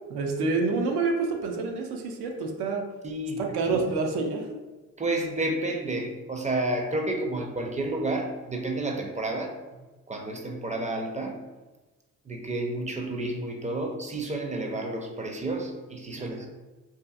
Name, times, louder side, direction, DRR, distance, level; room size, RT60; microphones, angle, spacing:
voice 1, 0.1-2.9 3.4-4.5 7.2-7.4 16.1-16.5, right 4 dB, 70° right, 2 dB, 0.6 m, -28 dB
voice 2, 3.0-3.8 5.0-9.6 10.1-11.4 12.2-16.5, right 2 dB, 20° right, 2 dB, 0.5 m, -30 dB
2.7 x 2.5 x 2.3 m, 1.2 s
hypercardioid pair, 50°, 41 cm